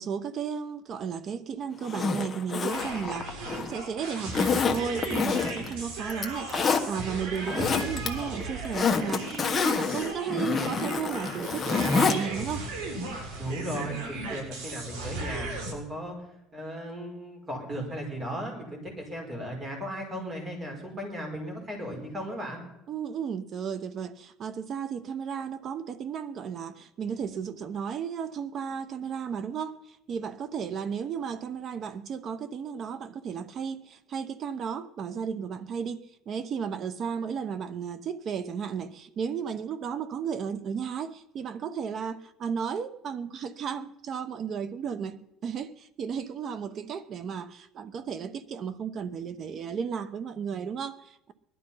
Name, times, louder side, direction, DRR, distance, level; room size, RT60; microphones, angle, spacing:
voice 1, 0.0-12.7 14.2-14.4 22.9-29.8 30.1-51.3, right 7 dB, 40° right, 1.0 m, -34 dB
Zipper (clothing), 1.8-3.8 4.3-5.7 6.1-6.8 7.3-8.1 8.4-12.2 12.5-12.6, left 5 dB, 20° left, 1.4 m, -27 dB
sound 1, 2.7-15.7, right 3 dB, 90° right, 6.3 m, -37 dB
voice 2, 13.4-16.1 16.5-22.6, equal, 20° right, 5.0 m, -36 dB
20.0 x 12.0 x 5.7 m
cardioid pair, 145°, 0 cm